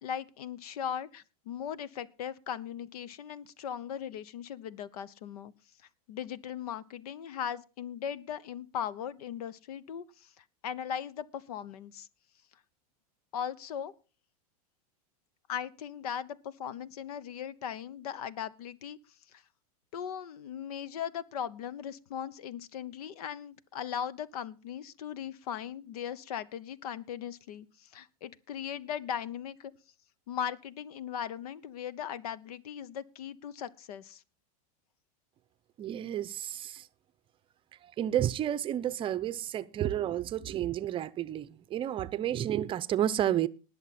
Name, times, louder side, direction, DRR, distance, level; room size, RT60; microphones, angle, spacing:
voice 1, 0.0-5.5 6.1-12.1 13.3-13.9 15.5-19.0 19.9-29.7 30.3-34.2, left 9 dB, 75° left, 1.0 m, -38 dB
voice 2, 35.8-36.9 37.8-43.5, right 11 dB, 25° right, 0.6 m, -31 dB
19.5 x 7.0 x 4.2 m
supercardioid pair, 130°, 19 cm